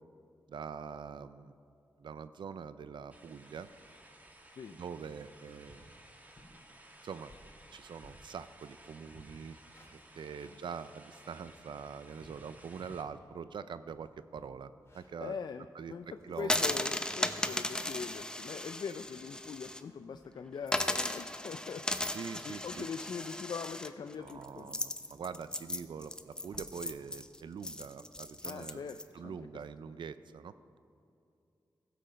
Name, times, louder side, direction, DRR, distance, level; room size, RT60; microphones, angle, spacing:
voice 1, 0.5-1.5 2.0-3.7 4.7-5.9 7.0-7.3 7.7-9.6 9.9-15.4 15.7-15.9 16.2-16.6 22.1-22.9 24.2-30.5, right 6 dB, 80° right, 13 dB, 0.4 m, -44 dB
sound 1, 3.1-13.0, right 1 dB, 20° right, 1.2 m, -57 dB
sound 2, 3.4-4.2 4.6-4.8 5.3-5.4 5.7-6.0 6.4-6.6 7.1-8.8 9.0-10.6 11.0-13.2 13.5-13.6 13.9-16.0, left 1 dB, 35° left, 2.7 m, -59 dB
voice 2, 15.2-22.1 22.4-24.8 28.4-29.6, left 6 dB, 65° left, 8 dB, 0.4 m, -42 dB
sound 3, 16.4-19.8 20.1-20.2 20.7-29.0, left 1 dB, 10° left, 0.5 m, -36 dB
16.0 x 7.7 x 5.1 m, 2.6 s
wide cardioid pair, 105°, 8 cm